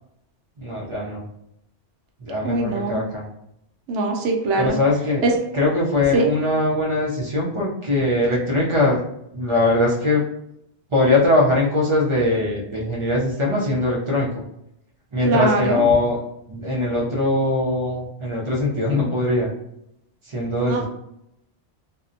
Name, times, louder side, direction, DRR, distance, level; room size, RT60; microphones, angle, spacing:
voice 1, 0.6-1.2 2.2-3.2 4.6-5.2 5.5-9.0 9.3-10.2 10.9-14.4 15.1-16.2 16.5-19.5 20.3-20.8, left 2 dB, 40° right, -4 dB, 0.4 m, -21 dB
voice 2, 2.4-3.0 3.9-4.8 5.2-5.3 6.1-6.3 15.2-15.8 20.6-20.9, right 2 dB, 85° right, 2 dB, 0.9 m, -21 dB
2.7 x 2.0 x 2.5 m, 0.78 s
omnidirectional pair, 1.2 m